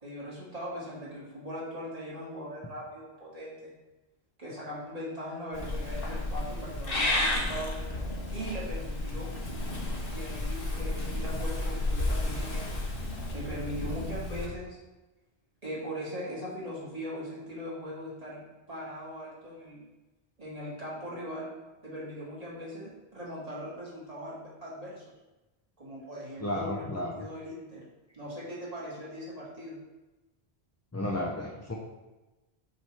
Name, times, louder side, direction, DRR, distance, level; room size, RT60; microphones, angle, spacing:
voice 1, 0.0-3.7 4.4-7.7 8.3-9.4 10.1-12.8 13.3-14.8 15.6-19.8 20.4-21.5 21.8-25.0 25.8-27.8 28.1-29.8, equal, 35° right, -6 dB, 2.1 m, -40 dB
Purr / Meow, 5.5-14.5, left 2 dB, 60° left, 1.3 m, -32 dB
voice 2, 26.4-27.2 30.9-31.7, left 1 dB, 20° left, -2 dB, 0.5 m, -33 dB
7.7 x 4.7 x 3.4 m, 1.1 s
omnidirectional pair, 1.1 m